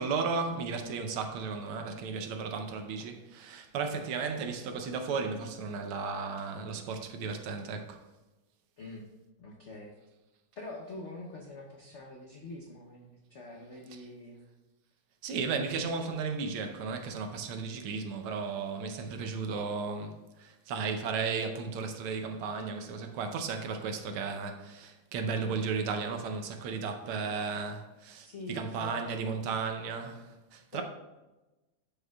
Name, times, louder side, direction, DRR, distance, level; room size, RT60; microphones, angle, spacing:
voice 1, 0.0-8.0 15.2-30.8, right 5 dB, 85° right, 1.7 m, -34 dB
voice 2, 8.8-9.1 9.4-9.9 10.6-14.4 28.2-29.2 30.7-30.8, left 2 dB, 65° left, 0.7 m, -44 dB
11.5 x 5.5 x 2.3 m
omnidirectional pair, 2.3 m